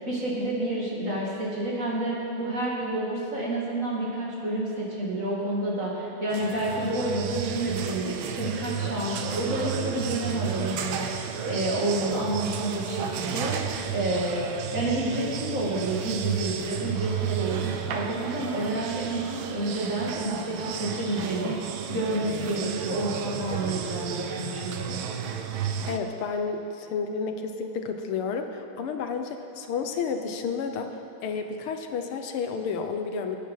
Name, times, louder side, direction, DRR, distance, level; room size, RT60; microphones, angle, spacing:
voice 1, 0.0-14.5 14.7-25.0, right 1 dB, 35° right, -5 dB, 2.8 m, -29 dB
sound 1, 6.3-26.0, right 8 dB, 75° right, 1.5 m, -33 dB
voice 2, 25.9-30.9 31.2-33.4, left 5 dB, 80° left, 6 dB, 1.8 m, -31 dB
21.0 x 9.2 x 5.6 m, 2.7 s
omnidirectional pair, 2.4 m